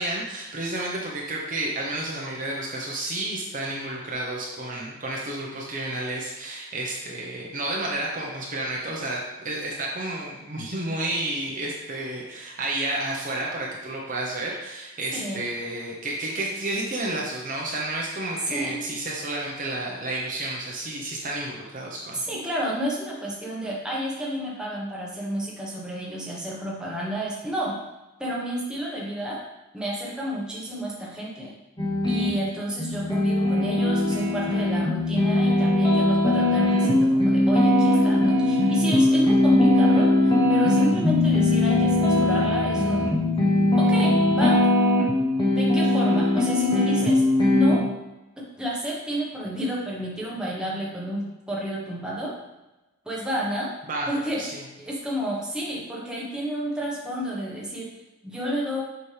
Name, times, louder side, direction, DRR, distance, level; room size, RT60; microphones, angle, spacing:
voice 1, 0.0-22.2 53.9-54.1 54.4-54.6, right 2 dB, 35° right, -3 dB, 0.9 m, -31 dB
voice 2, 15.1-15.5 18.5-18.9 22.1-27.8 28.2-29.4 29.7-31.5 32.0-43.1 43.7-44.7 45.5-47.8 48.4-52.3 53.0-53.7 54.1-54.5 54.8-57.9 58.2-58.8, equal, 5° right, -5 dB, 1.2 m, -30 dB
sound 1, 31.8-32.3 32.8-47.8, left 1 dB, 20° left, 1.0 m, -20 dB
7.0 x 5.2 x 3.4 m, 1.0 s
head